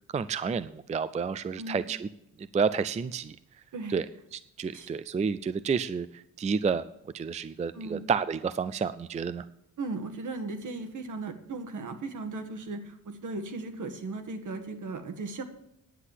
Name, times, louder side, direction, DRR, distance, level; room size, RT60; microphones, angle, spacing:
voice 1, 0.1-2.1 2.4-3.4 3.9-4.1 4.3-6.8 7.1-9.4, right 5 dB, 20° right, 14 dB, 0.3 m, -30 dB
voice 2, 7.7-8.0 9.8-15.4, right 3 dB, 70° right, 8 dB, 1.6 m, -37 dB
10.0 x 8.3 x 7.4 m, 0.79 s
wide cardioid pair, 170°, 32 cm